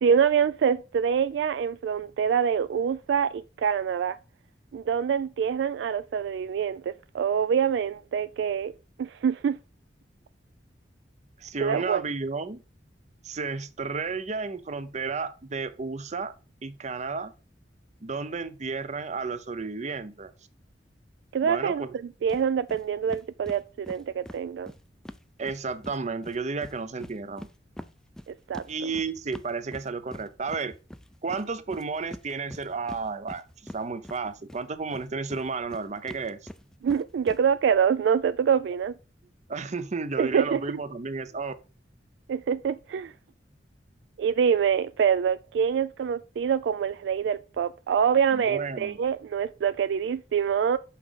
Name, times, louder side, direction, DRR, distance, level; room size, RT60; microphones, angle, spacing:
voice 1, 0.0-4.2 4.7-8.7 9.0-9.6 11.6-12.0 21.3-21.8 22.2-24.7 28.3-28.6 36.8-38.9 40.2-40.8 42.3-43.1 44.2-50.8, right 7 dB, 75° right, 0.3 m, -25 dB
voice 2, 11.4-12.6 13.2-16.3 16.6-17.3 18.0-20.3 21.4-21.9 25.4-27.5 28.7-30.7 31.2-33.4 33.7-36.4 39.5-41.5 48.3-49.0, right 4 dB, 40° right, 0.6 m, -32 dB
sound 1, 22.3-22.4 22.7-22.8 23.1-26.0 26.2-34.6 34.9-37.4, equal, 5° left, 0.4 m, -44 dB
5.8 x 4.9 x 5.2 m
head